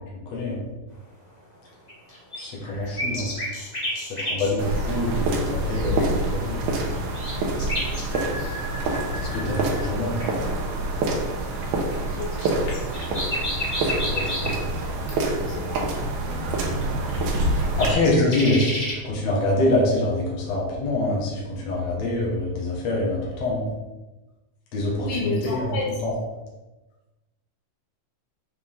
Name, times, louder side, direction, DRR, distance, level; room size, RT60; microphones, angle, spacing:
voice 1, 0.3-0.6 2.3-3.3 4.2-6.6 9.3-10.2 14.0-14.5 17.8-23.7 24.7-25.7 26.0-26.1, left 2 dB, 55° left, -4 dB, 2.6 m, -25 dB
sound 1, 1.7-4.5 6.4-9.8 10.2-10.3 11.7-14.7 16.5-16.6 16.8-18.9, left 1 dB, 25° left, 0.8 m, -31 dB
sound 2, 4.6-17.9, right 2 dB, 70° right, 2.3 m, -26 dB
voice 2, 12.2-12.8 15.4-15.8 25.0-25.9, left 4 dB, 80° left, -4 dB, 2.5 m, -31 dB
7.6 x 4.5 x 3.7 m, 1.1 s
omnidirectional pair, 3.9 m